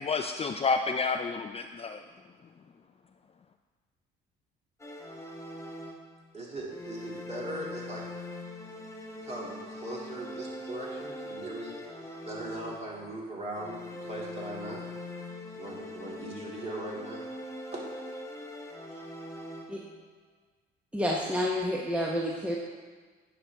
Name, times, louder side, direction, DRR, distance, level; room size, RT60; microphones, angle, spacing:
voice 1, 0.0-2.0, left 4 dB, 30° left, 6 dB, 0.4 m, -30 dB
sound 1, 4.8-6.3 6.7-13.1 13.5-20.0, left 1 dB, 15° left, 1.3 m, -42 dB
voice 2, 6.3-8.0 9.1-11.7 12.3-14.8 15.5-17.3 17.7-18.0 18.9-19.0 22.0-22.6, right 1 dB, 30° right, -4 dB, 2.6 m, -40 dB
voice 3, 20.9-22.6, equal, 5° right, -3 dB, 1.0 m, -29 dB
9.6 x 5.9 x 3.5 m, 1.5 s
supercardioid pair, 75°, 21 cm